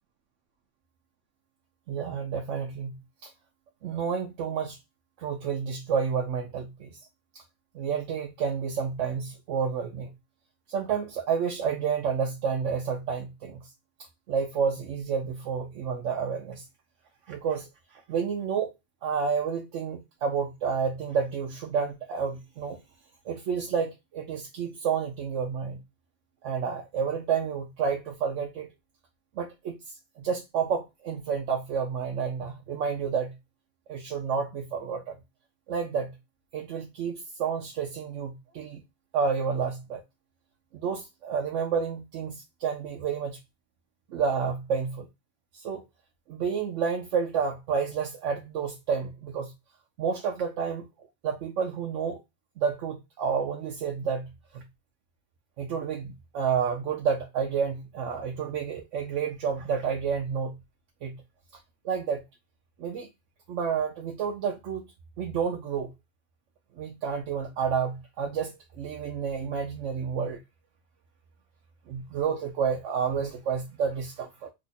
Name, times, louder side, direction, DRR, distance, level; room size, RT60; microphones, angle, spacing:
voice 1, 1.9-2.9 3.2-3.3 3.8-4.8 5.2-7.0 7.7-10.1 10.7-13.7 14.3-16.6 17.3-18.7 19.0-22.8 23.2-25.8 26.4-28.7 29.4-29.8 30.2-33.4 33.9-35.2 35.7-36.2 36.5-38.8 39.1-40.0 40.7-43.4 44.1-45.1 45.5-45.8 46.3-49.5 50.0-50.9 51.2-52.2 52.6-54.6 55.6-60.6 61.0-61.2 61.8-62.2 62.8-63.1 63.5-64.9 65.2-65.9 66.8-70.4 71.9-74.5, right 6 dB, 90° right, 1.0 m, -30 dB
2.9 x 2.3 x 4.0 m
omnidirectional pair, 1.2 m